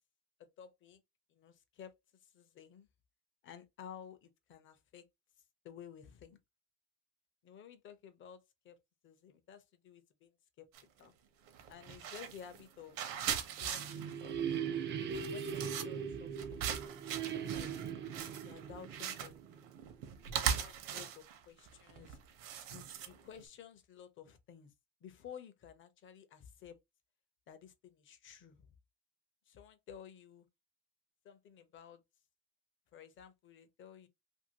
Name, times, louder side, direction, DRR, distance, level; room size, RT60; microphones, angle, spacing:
voice 1, 0.4-1.0 1.3-2.9 3.4-5.1 5.6-6.4 7.4-8.8 9.0-10.7 11.0-11.1 11.7-14.7 15.3-16.7 17.1-19.4 20.3-22.2 22.7-24.7 25.0-26.8 27.5-28.7 29.5-30.5 31.2-32.0 32.9-34.1, left 8 dB, 35° left, 0.5 m, -54 dB
sound 1, 10.7-11.0 11.5-23.4, right 8 dB, 60° right, 0.8 m, -40 dB
sound 2, 13.4-20.1, right 7 dB, 30° right, 0.4 m, -40 dB
2.8 x 2.6 x 2.7 m
cardioid pair, 160°, 36 cm